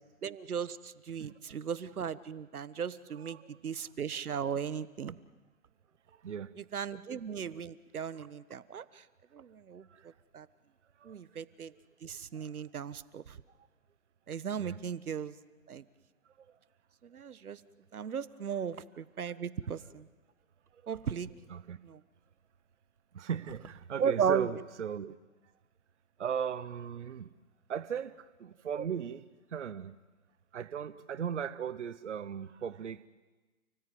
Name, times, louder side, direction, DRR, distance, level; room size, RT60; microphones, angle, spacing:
voice 1, 0.2-5.2 6.6-9.0 9.3-9.9 10.3-10.5 11.0-11.7 12.0-13.4 14.3-15.3 15.7-15.8 17.0-17.6 17.9-20.1 20.9-21.3 21.8-22.0 24.0-24.5 28.8-28.9, right 7 dB, 80° right, 16 dB, 1.4 m, -36 dB
voice 2, 1.2-1.6 3.2-3.5 6.1-6.6 9.9-10.1 11.0-11.2 11.7-11.8 12.3-12.5 14.6-14.8 16.4-16.6 18.6-18.7 20.7-20.8 21.5-21.8 23.1-25.2 26.2-27.3 27.7-29.2 29.5-30.0 30.5-33.1, right 8 dB, 55° right, 14 dB, 0.9 m, -38 dB
30.0 x 17.5 x 9.4 m, 1.2 s
hypercardioid pair, 175°, 43 cm